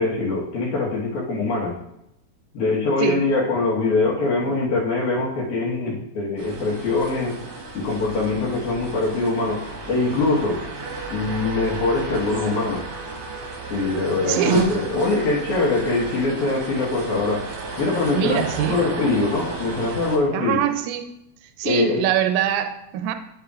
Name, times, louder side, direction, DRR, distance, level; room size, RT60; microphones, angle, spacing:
voice 1, 0.0-1.8 2.5-7.4 7.7-10.6 11.1-12.8 13.7-17.5 17.8-20.6 21.6-22.1, left 3 dB, 70° left, 2.6 m, -23 dB
sound 1, 6.4-20.2, right 3 dB, 50° right, 1.7 m, -31 dB
voice 2, 14.3-14.6 18.1-18.8 20.3-21.1 21.6-23.1, right 10 dB, 80° right, 1.9 m, -23 dB
10.0 x 5.5 x 2.4 m
omnidirectional pair, 3.8 m